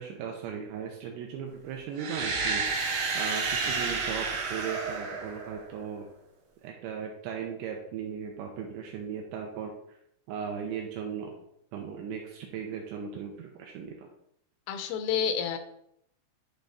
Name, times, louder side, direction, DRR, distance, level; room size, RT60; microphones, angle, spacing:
voice 1, 0.0-6.1 6.6-10.0 10.3-11.3 11.7-14.1, right 7 dB, 85° right, 1 dB, 2.6 m, -37 dB
sound 1, 1.9-5.9, right 4 dB, 65° right, 2.2 m, -31 dB
voice 2, 14.7-15.6, left 7 dB, 85° left, 8 dB, 3.2 m, -29 dB
10.5 x 3.5 x 4.0 m, 0.74 s
omnidirectional pair, 5.7 m